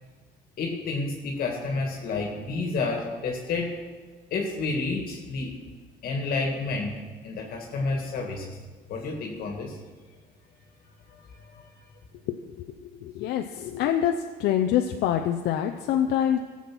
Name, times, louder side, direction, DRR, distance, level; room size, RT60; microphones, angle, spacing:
voice 1, 0.6-3.7 4.3-5.5 6.0-6.9 7.2-8.5 8.9-9.7 11.5-11.6, left 3 dB, 60° left, 1 dB, 1.9 m, -30 dB
voice 2, 12.3-12.7 13.0-14.1 14.4-16.4, left 10 dB, 80° left, 4 dB, 0.7 m, -25 dB
14.5 x 7.2 x 6.1 m, 1.5 s
cardioid pair, 110°, 17 cm